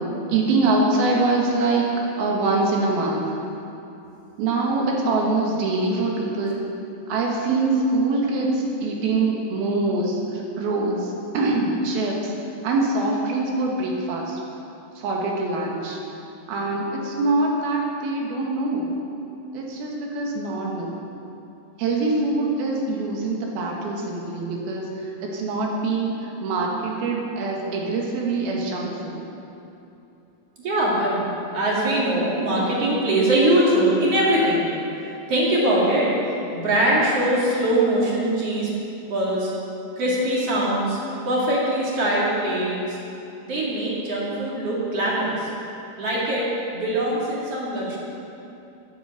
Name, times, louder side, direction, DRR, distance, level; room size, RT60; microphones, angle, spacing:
voice 1, 0.3-1.9 2.2-3.3 4.4-6.6 7.1-12.3 12.6-14.4 15.0-16.0 16.5-18.9 19.5-21.0 21.8-24.9 25.2-26.1 26.4-29.2, right 3 dB, 90° right, -1 dB, 3.5 m, -24 dB
voice 2, 30.6-34.6 35.0-38.7 39.1-39.5 40.0-41.0 41.2-43.0 43.4-45.5 46.0-48.0, right 1 dB, 45° right, -5 dB, 3.1 m, -22 dB
10.0 x 8.7 x 7.7 m, 2.8 s
omnidirectional pair, 4.2 m